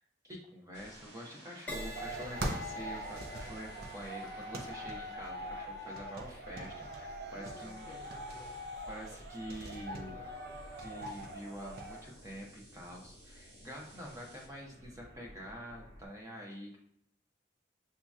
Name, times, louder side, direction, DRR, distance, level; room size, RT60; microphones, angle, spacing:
voice 1, 0.2-7.9 8.9-10.1 10.8-16.8, equal, 15° right, -2 dB, 0.8 m, -46 dB
sound 1, 0.7-16.1, equal, 90° right, 1.1 m, -55 dB
Crash cymbal, 1.7-9.3 10.0-10.3, left 1 dB, 10° left, 1.0 m, -49 dB
sound 2, 2.0-12.0, right 1 dB, 60° right, 0.6 m, -42 dB
voice 2, 7.4-8.7 9.9-10.6, left 1 dB, 30° left, 0 dB, 0.6 m, -54 dB
6.9 x 2.9 x 2.3 m, 0.72 s
head